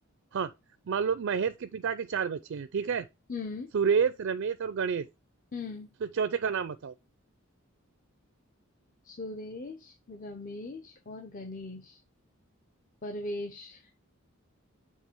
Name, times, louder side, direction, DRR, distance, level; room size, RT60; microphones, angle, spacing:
voice 1, 0.9-3.1 3.7-5.1 6.0-6.9, right 6 dB, 60° right, 0.4 m, -29 dB
voice 2, 3.3-3.7 5.5-5.9 9.0-12.0 13.0-13.9, left 2 dB, 40° left, 0.8 m, -39 dB
7.4 x 3.7 x 4.4 m
head